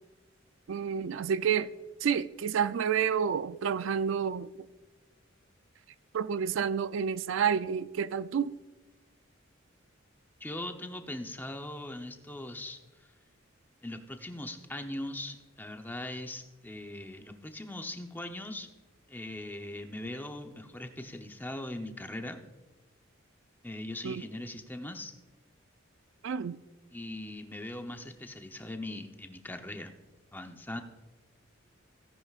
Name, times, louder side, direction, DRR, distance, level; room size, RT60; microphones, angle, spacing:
voice 1, 0.7-1.7 2.0-4.5 6.1-8.5 24.0-24.2 26.2-26.6, right 7 dB, 65° right, 0.3 m, -29 dB
voice 2, 10.4-12.8 13.8-18.7 19.1-22.4 23.6-25.1 26.9-29.9 30.3-30.8, left 1 dB, 10° left, 0.7 m, -40 dB
17.0 x 10.0 x 2.4 m
head